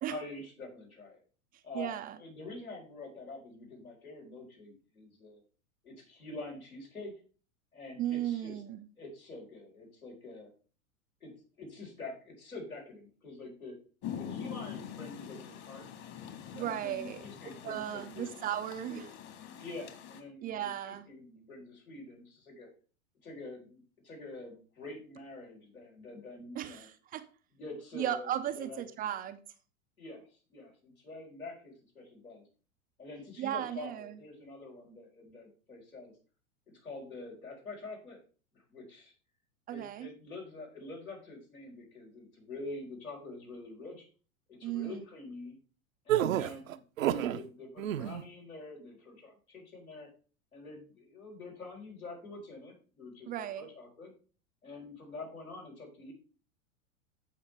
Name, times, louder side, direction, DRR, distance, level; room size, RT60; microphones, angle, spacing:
voice 1, 0.1-1.2 1.6-5.4 5.8-7.2 7.7-8.6 9.0-10.5 11.2-11.3 11.6-13.8 14.2-15.9 16.5-18.3 18.9-19.0 19.6-22.7 23.2-26.9 27.6-29.1 30.0-32.4 33.0-36.1 36.7-38.2 38.7-39.1 39.7-44.0 44.5-45.6 46.0-50.1 50.5-54.1 54.6-56.1, left 2 dB, 85° left, 4.5 m, -46 dB
voice 2, 1.7-2.2 8.0-8.9 16.5-17.3 17.6-19.1 20.4-21.1 26.6-27.3 27.9-29.4 33.4-34.2 39.7-40.1 44.6-45.0 46.2-46.4 53.3-53.7, right 11 dB, 20° right, 0.4 m, -36 dB
Rain, 14.0-20.2, left 9 dB, 40° left, 1.9 m, -44 dB
sound 1, 46.1-47.4 47.8-48.2, right 12 dB, 70° right, 0.7 m, -29 dB
15.0 x 5.5 x 3.4 m
figure-of-eight pair, 90°, 42 cm